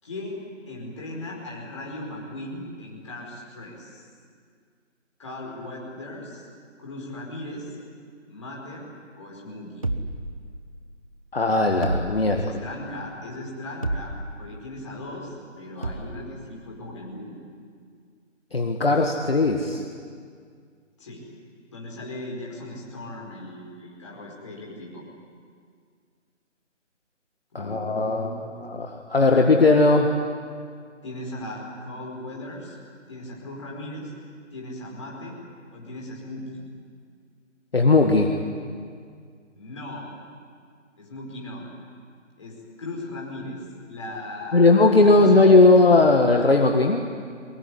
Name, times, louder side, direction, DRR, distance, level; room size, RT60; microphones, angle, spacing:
voice 1, 0.0-4.0 5.2-6.5 6.8-7.8 8.3-8.9 9.2-9.9 12.3-14.1 14.4-17.3 21.0-21.3 21.7-25.0 27.6-28.6 29.1-29.5 31.0-32.8 33.1-34.1 34.5-35.4 35.7-36.6 39.5-40.1 41.0-41.7 42.4-45.5, left 1 dB, 25° left, -2 dB, 4.9 m, -38 dB
sound 1, 9.8-10.9 11.8-12.7 13.8-14.5 15.8-16.3, right 2 dB, 30° right, 1.0 m, -31 dB
voice 2, 11.3-12.4 15.8-15.9 18.5-19.8 27.5-30.1 37.7-38.3 44.5-47.0, left 3 dB, 50° left, 3 dB, 1.8 m, -18 dB
22.5 x 21.5 x 9.8 m, 2.1 s
figure-of-eight pair, 165°, 37 cm